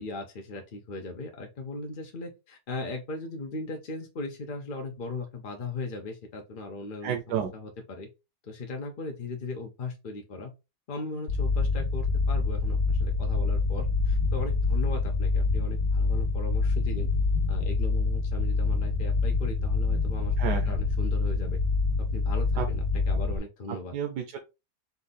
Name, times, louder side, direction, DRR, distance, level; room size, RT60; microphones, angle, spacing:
voice 1, 0.0-7.7 8.0-8.1 8.4-10.5 10.9-17.1 17.5-20.3 20.7-21.6 22.1-23.9, left 3 dB, 50° left, 3 dB, 0.6 m, -38 dB
voice 2, 7.0-7.5 20.4-20.8 22.6-22.7 23.7-24.4, right 8 dB, 90° right, 4 dB, 1.3 m, -31 dB
sound 1, 11.3-23.4, left 3 dB, 75° left, 1.4 m, -26 dB
4.6 x 2.6 x 4.0 m, 0.26 s
omnidirectional pair, 1.7 m